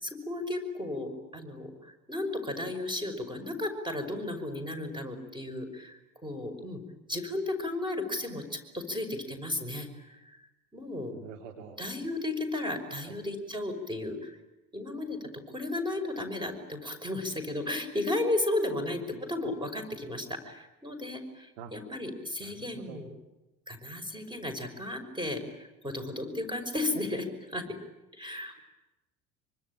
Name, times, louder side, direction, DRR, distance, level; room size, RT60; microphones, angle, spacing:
voice 1, 0.0-6.8 7.1-10.2 10.7-11.1 11.8-14.4 14.7-19.0 19.3-23.1 23.7-27.7 28.1-28.5, left 2 dB, 10° right, 8 dB, 5.7 m, -34 dB
voice 2, 11.1-11.8 18.7-19.2 21.6-21.7 22.4-23.0, right 5 dB, 60° right, 2 dB, 2.8 m, -46 dB
25.5 x 24.5 x 9.0 m, 1.0 s
figure-of-eight pair, 70°, 44 cm